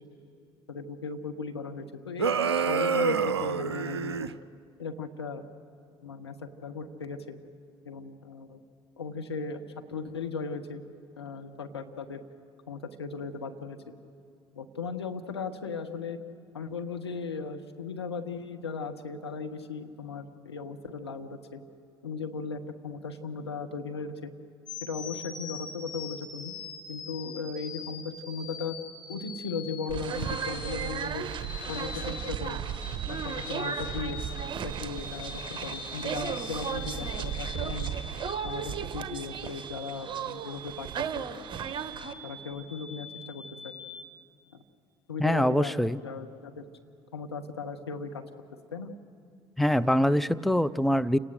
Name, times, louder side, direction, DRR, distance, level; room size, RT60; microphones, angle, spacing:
voice 1, 0.7-4.4 4.8-5.4 6.0-7.3 7.8-8.6 9.0-9.6 9.9-10.8 11.1-12.2 12.7-13.8 14.5-16.2 16.5-21.6 22.0-24.3 24.8-26.5 26.9-28.8 29.1-31.3 31.7-32.6 33.0-34.2 34.6-37.9 38.4-40.9 41.9-43.7 45.1-45.8 46.0-46.7 47.1-48.2 48.7-48.9, left 4 dB, 80° left, 5 dB, 1.2 m, -37 dB
sound 1, 2.2-4.3, right 5 dB, 80° right, 0.5 m, -27 dB
sound 2, 24.7-44.0, left 4 dB, 35° left, 3.0 m, -43 dB
sound 3, 29.9-42.1, right 8 dB, 35° right, 1.3 m, -35 dB
voice 2, 45.2-46.0 49.6-51.2, equal, ahead, 13 dB, 0.6 m, -24 dB
29.0 x 18.0 x 6.5 m, 2.3 s
figure-of-eight pair, 55°, 13 cm